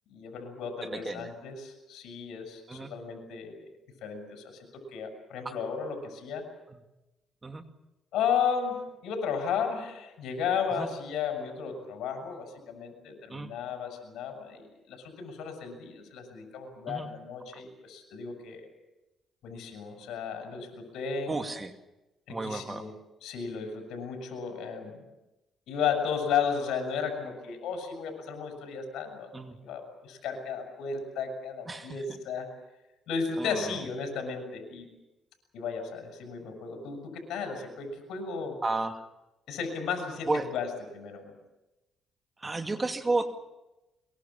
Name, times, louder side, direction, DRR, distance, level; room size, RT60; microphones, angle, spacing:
voice 1, 0.1-3.6 4.0-6.5 8.1-18.6 19.4-21.3 22.3-22.9 23.2-25.0 25.7-29.3 29.6-32.5 33.1-34.9 35.5-38.6 39.5-41.3, left 6 dB, 85° left, 5 dB, 6.9 m, -34 dB
voice 2, 0.9-1.3 2.7-2.9 6.7-6.8 7.4-7.6 10.7-10.9 13.3-13.5 16.9-17.1 21.3-21.7 22.3-22.9 29.3-29.6 31.7-32.0 33.4-33.8 38.6-39.0 40.3-40.5 42.4-43.3, right 3 dB, 25° right, 6 dB, 2.3 m, -32 dB
23.5 x 23.0 x 7.3 m, 0.99 s
cardioid pair, 90°, 0 cm